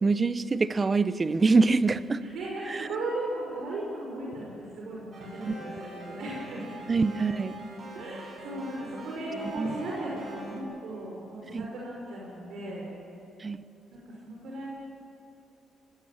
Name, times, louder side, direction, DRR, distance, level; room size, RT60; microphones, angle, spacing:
voice 1, 0.0-2.2 2.7-2.9 5.4-5.5 6.9-7.6 9.6-9.7 11.5-11.7 13.4-13.6, right 4 dB, 30° right, 14 dB, 0.9 m, -25 dB
voice 2, 2.2-6.7 7.9-12.9 13.9-14.7, right 1 dB, 75° right, -3 dB, 5.9 m, -37 dB
sound 1, 5.1-10.6, right 1 dB, 50° right, 7.8 m, -43 dB
25.0 x 20.0 x 8.9 m, 2.8 s
cardioid pair, 90°, 0 cm